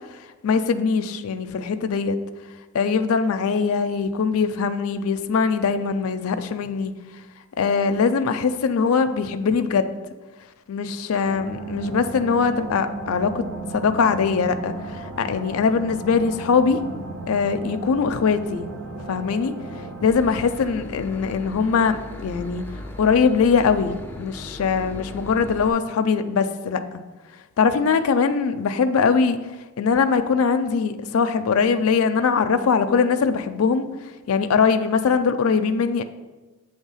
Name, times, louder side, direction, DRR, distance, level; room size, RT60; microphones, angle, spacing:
voice 1, 0.1-2.2 2.7-6.9 7.6-10.0 10.7-13.4 13.7-16.8 17.3-18.7 19.1-19.6 20.0-22.6 23.0-27.0 27.6-29.4 29.8-33.9 34.3-36.0, left 5 dB, 85° left, 8 dB, 0.4 m, -21 dB
sound 1, 11.2-20.1, right 3 dB, 75° right, 0.8 m, -35 dB
Boat Water vehicle / Engine, 20.1-25.7, left 1 dB, 10° left, 0.4 m, -38 dB
7.3 x 3.3 x 5.5 m, 1.2 s
head